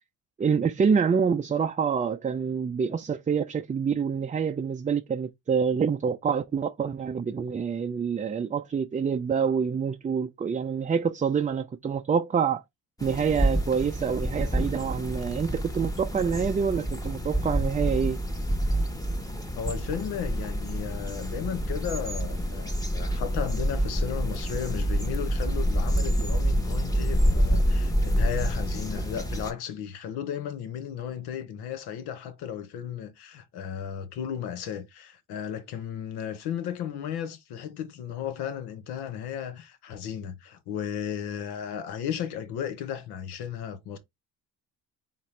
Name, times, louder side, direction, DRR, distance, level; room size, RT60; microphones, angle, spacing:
voice 1, 0.4-12.6 13.0-18.2, right 6 dB, 20° right, 0.4 m, -26 dB
sound 1, 13.0-29.5, equal, 10° left, 1.1 m, -27 dB
voice 2, 19.6-44.0, left 9 dB, 85° left, 0.9 m, -35 dB
4.1 x 3.7 x 3.2 m
supercardioid pair, 65°, 38 cm